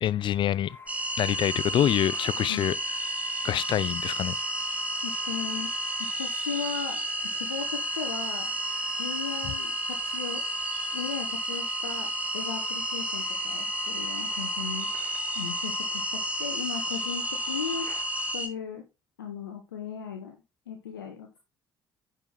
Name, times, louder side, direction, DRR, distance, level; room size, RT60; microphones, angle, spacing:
voice 1, 0.0-0.8 1.2-2.8 3.4-4.4, left 11 dB, 45° left, 0.5 m, -26 dB
sound 1, 0.7-18.3, left 2 dB, 20° left, 1.8 m, -43 dB
sound 2, 0.9-18.5, right 1 dB, 10° right, 2.0 m, -32 dB
voice 2, 5.0-5.7 6.2-8.6 9.0-10.4 10.9-14.9 15.3-17.9 18.3-18.9 19.2-20.4 20.7-21.4, left 7 dB, 85° left, 1.0 m, -37 dB
10.0 x 5.9 x 3.4 m
figure-of-eight pair, 50°, 11 cm